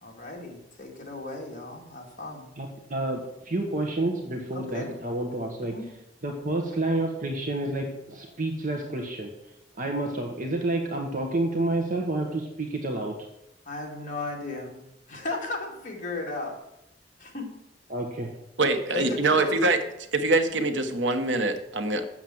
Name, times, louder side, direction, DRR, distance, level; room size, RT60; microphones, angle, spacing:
voice 1, 0.0-2.5 4.5-5.0 5.7-5.9 13.7-14.8 15.1-16.6 17.2-17.5 18.9-19.6, left 2 dB, 45° left, 0 dB, 2.2 m, -35 dB
voice 2, 2.6-5.7 6.2-13.2 17.9-18.3, right 2 dB, 45° right, 2 dB, 1.2 m, -29 dB
voice 3, 18.6-19.8 20.1-22.0, right 2 dB, 85° right, 7 dB, 1.1 m, -24 dB
7.4 x 7.3 x 7.8 m, 0.86 s
head